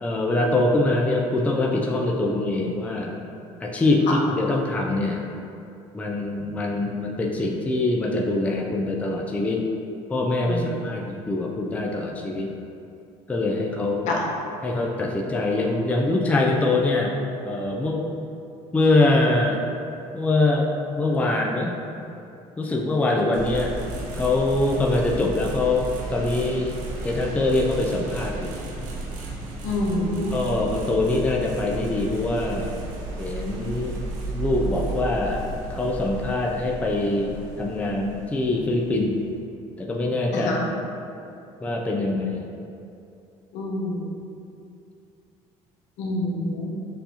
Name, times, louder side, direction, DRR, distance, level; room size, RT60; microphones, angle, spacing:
voice 1, 0.0-3.2 3.6-5.3 5.9-9.6 10.1-12.5 13.3-14.1 14.6-17.1 17.4-18.0 18.7-19.6 20.1-21.8 22.6-23.7 24.1-28.6 30.3-32.8 33.2-34.0 34.3-35.4 35.7-39.2 39.8-40.5 41.6-42.4, left 2 dB, 10° left, -1 dB, 0.4 m, -23 dB
sound 1, 23.3-39.4, right 2 dB, 85° right, 0.7 m, -34 dB
voice 2, 29.6-30.3 40.3-40.7 43.5-44.0 46.0-46.7, left 2 dB, 70° left, -3 dB, 0.9 m, -27 dB
6.7 x 2.6 x 2.9 m, 2.6 s
cardioid pair, 120°, 13 cm